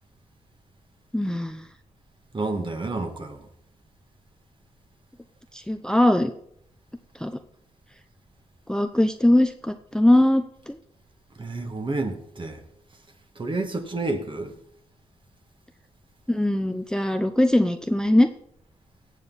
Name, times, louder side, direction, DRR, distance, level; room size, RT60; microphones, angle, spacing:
voice 1, 1.1-1.6 5.5-6.3 7.2-7.3 8.7-10.8 16.3-18.3, left 1 dB, 5° left, 0.8 m, -21 dB
voice 2, 2.3-3.5 11.4-12.6 13.4-14.6, right 2 dB, 35° right, 2.2 m, -30 dB
17.0 x 7.4 x 4.2 m
supercardioid pair, 50°, 14 cm